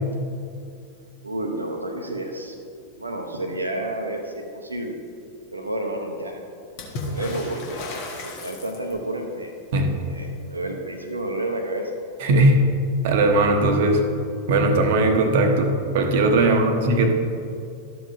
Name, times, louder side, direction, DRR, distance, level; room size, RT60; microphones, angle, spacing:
voice 1, 1.2-2.6 3.0-5.0 5.5-6.4 7.1-7.8 8.2-9.5 10.1-11.9 16.4-16.8, right 1 dB, 80° right, 3 dB, 0.8 m, -30 dB
Water / Splash splatter, 6.8-9.2 12.5-12.6 12.8-13.6 14.7-14.8, left 2 dB, 45° left, 1.4 m, -34 dB
voice 2, 12.2-12.7 13.0-14.0 14.5-17.1, right 2 dB, 55° right, 4 dB, 0.9 m, -19 dB
12.5 x 7.6 x 2.7 m, 2.5 s
figure-of-eight pair, 90°, 0 cm